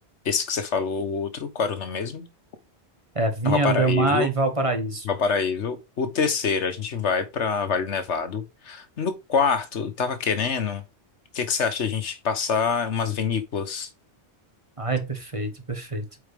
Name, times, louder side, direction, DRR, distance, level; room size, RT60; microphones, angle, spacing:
voice 1, 0.2-2.2 3.4-4.3 5.0-10.8 11.3-13.9, left 5 dB, 80° left, 1.4 m, -26 dB
voice 2, 3.1-5.1 14.8-16.0, right 3 dB, 30° right, 1.4 m, -24 dB
8.6 x 4.6 x 3.4 m
omnidirectional pair, 1.2 m